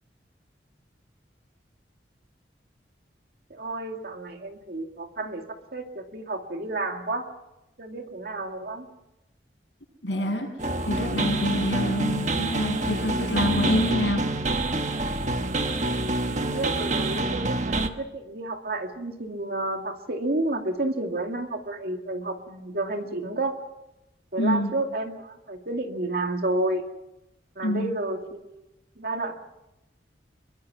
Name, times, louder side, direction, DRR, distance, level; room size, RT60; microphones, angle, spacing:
voice 1, 3.5-7.3 7.8-8.9 16.3-23.5 24.3-26.8 27.6-28.6 29.0-29.3, right 2 dB, 55° right, 4 dB, 2.3 m, -31 dB
voice 2, 10.0-10.5 10.9-14.2 24.4-24.7 27.6-27.9, left 1 dB, 80° left, 1 dB, 7.8 m, -26 dB
sound 1, 10.6-17.9, right 2 dB, 40° right, 1.3 m, -27 dB
25.0 x 22.5 x 6.0 m, 0.93 s
head